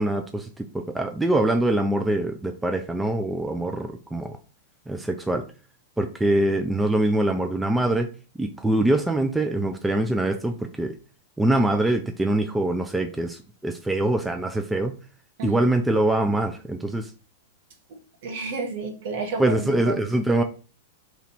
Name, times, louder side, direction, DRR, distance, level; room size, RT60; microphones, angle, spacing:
voice 1, 0.0-4.4 4.9-5.4 6.0-8.1 8.4-10.9 11.4-14.9 15.4-17.1 19.4-20.4, right 1 dB, 5° right, 5 dB, 0.4 m, -24 dB
voice 2, 18.2-20.0, right 4 dB, 60° right, 3 dB, 1.1 m, -31 dB
3.0 x 2.6 x 4.1 m, 0.36 s
figure-of-eight pair, 100°, 0 cm